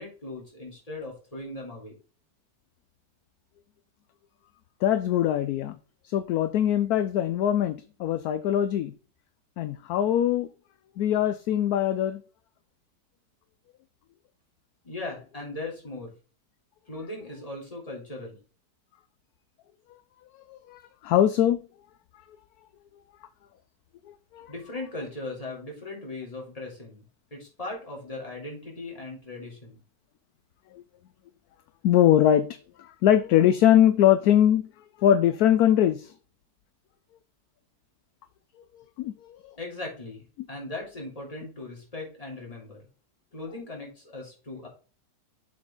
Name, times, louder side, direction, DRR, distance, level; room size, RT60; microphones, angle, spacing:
voice 1, 0.0-2.0 14.8-16.1 16.9-18.4 24.5-27.0 27.3-29.8 39.6-42.8 43.3-44.7, left 2 dB, 20° left, 3.1 m, -38 dB
voice 2, 4.8-5.8 6.0-8.9 9.6-10.5 11.0-12.2 20.5-21.6 24.3-24.5 30.7-30.8 31.8-32.5 32.8-34.7 35.0-36.1 39.0-39.1, left 11 dB, 70° left, 1.0 m, -22 dB
7.3 x 5.2 x 3.7 m
omnidirectional pair, 1.9 m